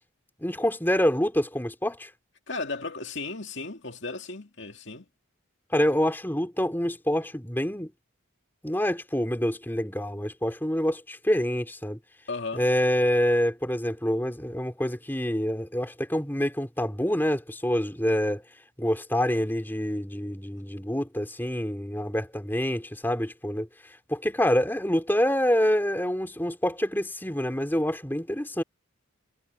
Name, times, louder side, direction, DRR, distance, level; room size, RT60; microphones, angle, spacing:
voice 1, 0.4-2.1 5.7-7.9 8.6-12.0 12.5-18.4 18.8-23.7 24.1-28.6, equal, 10° left, 3.3 m, -26 dB
voice 2, 2.5-5.1 12.3-12.6, left 3 dB, 55° left, 2.4 m, -35 dB
head